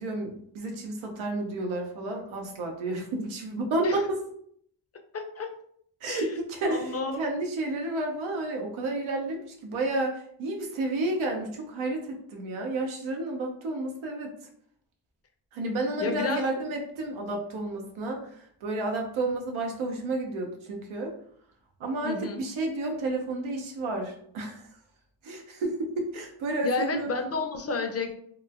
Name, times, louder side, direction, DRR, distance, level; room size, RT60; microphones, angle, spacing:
voice 1, 0.0-4.2 6.0-14.3 15.5-21.1 21.8-24.7 25.2-27.1, right 2 dB, 90° right, 2 dB, 0.7 m, -31 dB
voice 2, 5.1-5.5 6.1-6.3 6.6-7.3 16.0-16.5 22.0-22.4 26.6-28.2, left 3 dB, 30° left, 5 dB, 0.5 m, -30 dB
3.0 x 2.2 x 2.4 m, 0.65 s
supercardioid pair, 45°, 47 cm